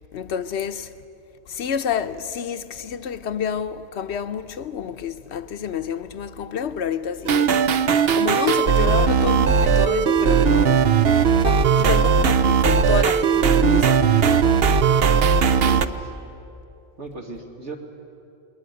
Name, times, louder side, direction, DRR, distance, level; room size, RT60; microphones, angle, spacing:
voice 1, 0.1-0.9 1.5-7.6 8.1-10.9 11.4-14.8 15.1-15.2, left 8 dB, 75° left, 1.1 m, -28 dB
sound 1, 7.3-15.9, right 6 dB, 60° right, 0.9 m, -18 dB
voice 2, 15.6-16.2 17.0-17.8, right 2 dB, 85° right, 2.7 m, -36 dB
20.5 x 20.0 x 9.6 m
omnidirectional pair, 1.2 m